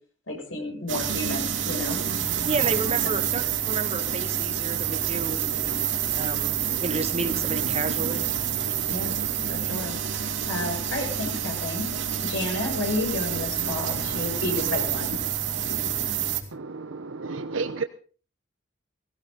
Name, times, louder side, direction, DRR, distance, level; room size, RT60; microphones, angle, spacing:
voice 1, 0.3-2.0 3.0-3.1 8.9-9.2 9.5-10.0 10.5-11.9 12.2-15.2, left 2 dB, 85° left, 1 dB, 7.2 m, -31 dB
sound 1, 0.9-16.4, right 8 dB, 70° right, 2.6 m, -28 dB
voice 2, 2.4-5.4 6.1-8.3, right 3 dB, 30° right, 6 dB, 1.7 m, -31 dB
voice 3, 16.5-17.8, right 4 dB, 90° right, 9 dB, 0.9 m, -32 dB
17.5 x 16.5 x 3.9 m, 0.40 s
head